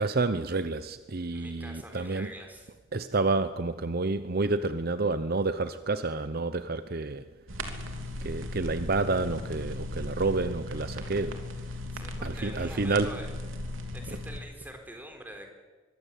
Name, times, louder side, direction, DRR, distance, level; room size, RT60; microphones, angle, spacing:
voice 1, 0.0-2.3 2.9-7.3 8.2-11.4 12.2-13.2 14.1-14.2, right 3 dB, 50° right, 0.8 m, -29 dB
voice 2, 1.3-2.7 11.9-13.3 13.9-15.5, right 1 dB, 10° right, 4.0 m, -45 dB
sound 1, 7.5-14.4, left 1 dB, 80° right, 3.2 m, -37 dB
23.5 x 23.0 x 8.4 m
head